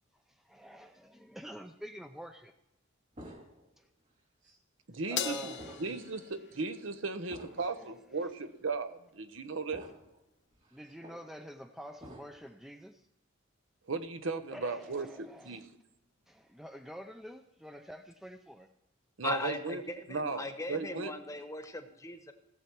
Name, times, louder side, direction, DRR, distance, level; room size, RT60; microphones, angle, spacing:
voice 1, 0.3-2.5 3.8-3.9 5.1-5.8 7.7-7.9 10.7-13.0 14.5-15.7 16.3-18.7, equal, ahead, 7 dB, 0.4 m, -47 dB
sound 1, 3.1-3.8 4.4-4.6 5.5-6.1 6.5-6.7 7.3-7.7 8.4-8.5 9.7-10.2 10.5-11.2 12.0-12.5, equal, 40° right, 2.1 m, -51 dB
voice 2, 4.9-5.5 5.8-9.9 13.9-15.7 19.2-19.8 20.1-21.1, right 4 dB, 80° right, 10 dB, 0.8 m, -36 dB
Crash cymbal, 5.2-7.7, left 8 dB, 60° left, 0.8 m, -40 dB
voice 3, 19.2-22.3, left 2 dB, 15° left, 7 dB, 1.0 m, -38 dB
17.5 x 7.2 x 4.5 m, 0.86 s
head